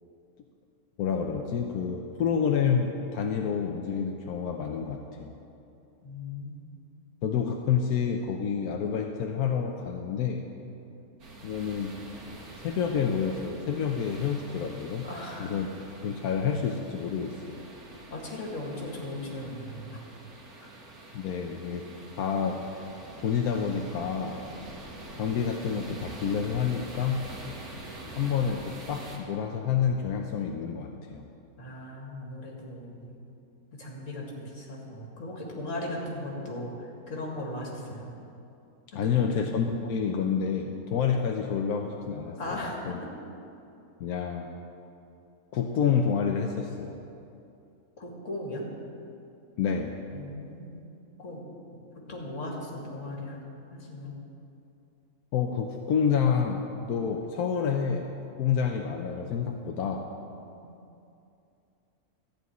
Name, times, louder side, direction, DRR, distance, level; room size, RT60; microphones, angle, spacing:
voice 1, 1.0-5.3 7.2-10.4 11.4-11.9 12.6-15.1 15.4-15.7 16.0-17.6 21.1-21.9 22.2-22.6 23.2-24.4 25.1-27.2 28.2-31.3 38.9-43.0 44.0-44.5 45.5-47.0 49.6-50.0 55.3-58.1 58.4-60.1, left 7 dB, 90° left, 3 dB, 1.2 m, -28 dB
voice 2, 6.0-6.6 15.0-15.5 18.1-20.1 21.8-22.3 31.6-33.2 33.8-38.1 38.9-39.5 42.4-43.0 48.0-48.6 50.1-50.9 51.2-51.4 52.1-53.4 53.7-54.2 60.4-60.7, left 1 dB, 55° left, -2 dB, 2.5 m, -38 dB
sound 1, 11.2-29.2, right 2 dB, 85° right, 2.1 m, -45 dB
13.5 x 5.2 x 9.4 m, 2.7 s
omnidirectional pair, 1.5 m